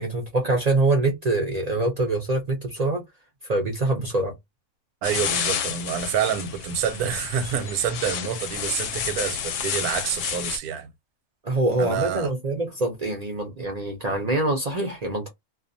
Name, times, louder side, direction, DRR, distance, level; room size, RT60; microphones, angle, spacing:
voice 1, 0.0-3.0 3.5-4.3 11.4-15.3, right 2 dB, 60° right, 0.4 m, -24 dB
sound 1, 5.0-10.6, left 8 dB, 70° left, 0.8 m, -30 dB
voice 2, 5.0-10.9 11.8-12.3, right 8 dB, 90° right, 1.1 m, -27 dB
2.4 x 2.4 x 2.6 m
omnidirectional pair, 1.6 m